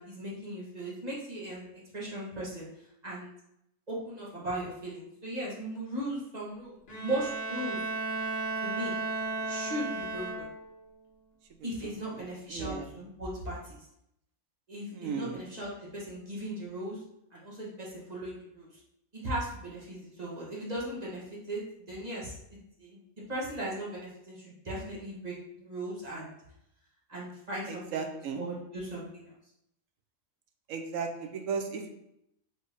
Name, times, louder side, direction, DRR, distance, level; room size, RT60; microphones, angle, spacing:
voice 1, 0.0-1.6 1.9-3.3 3.9-7.8 8.6-8.9 9.5-10.5 11.6-13.9 14.7-17.0 17.3-18.8 19.1-21.6 21.9-23.0 23.3-26.3 27.1-28.0 28.3-29.3, right 1 dB, 30° right, -5 dB, 1.3 m, -38 dB
Bowed string instrument, 6.9-10.8, right 3 dB, 50° left, 1.1 m, -34 dB
voice 2, 11.6-12.9 14.9-15.4 27.7-28.4 30.7-31.9, right 5 dB, 75° right, 4 dB, 1.0 m, -36 dB
4.4 x 3.2 x 3.4 m, 0.79 s
omnidirectional pair, 1.4 m